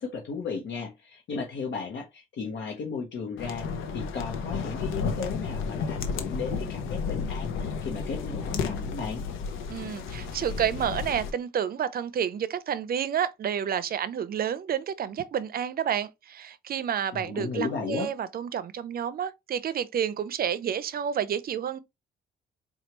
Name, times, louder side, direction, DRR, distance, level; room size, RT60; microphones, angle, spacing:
voice 1, 0.0-3.7 3.9-9.2 17.1-18.1, left 5 dB, 65° left, 1.0 m, -35 dB
sound 1, 3.4-11.3, left 5 dB, 85° left, 0.7 m, -32 dB
voice 2, 9.7-21.8, right 8 dB, 50° right, 0.5 m, -30 dB
4.4 x 2.4 x 3.0 m
cardioid pair, 90°, 20 cm